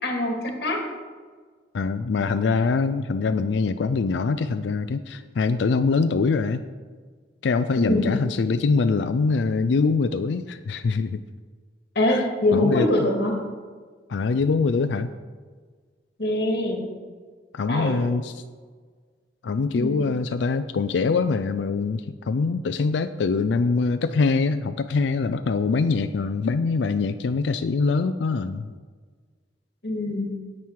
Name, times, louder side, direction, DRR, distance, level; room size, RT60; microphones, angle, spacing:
voice 1, 0.0-0.8 7.8-8.1 12.0-13.4 16.2-16.8 17.7-18.0 19.7-20.0 29.8-30.3, left 1 dB, 65° left, 1 dB, 2.2 m, -23 dB
voice 2, 1.7-6.6 7.4-11.2 12.1-12.2 12.5-12.9 14.1-15.1 17.5-18.3 19.4-28.7, left 4 dB, 85° left, 10 dB, 0.4 m, -23 dB
9.2 x 8.9 x 4.7 m, 1.5 s
head